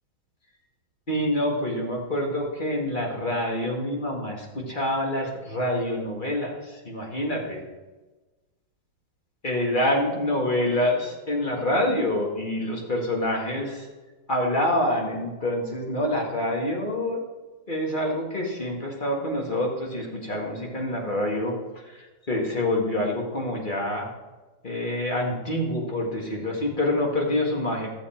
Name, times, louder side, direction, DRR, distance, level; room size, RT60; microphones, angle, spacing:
voice 1, 1.1-7.6 9.4-13.9 14.3-17.2 17.7-21.5 21.8-24.1 24.6-27.9, left 1 dB, 25° left, -1 dB, 1.7 m, -26 dB
14.0 x 7.1 x 4.4 m, 1.2 s
omnidirectional pair, 2.3 m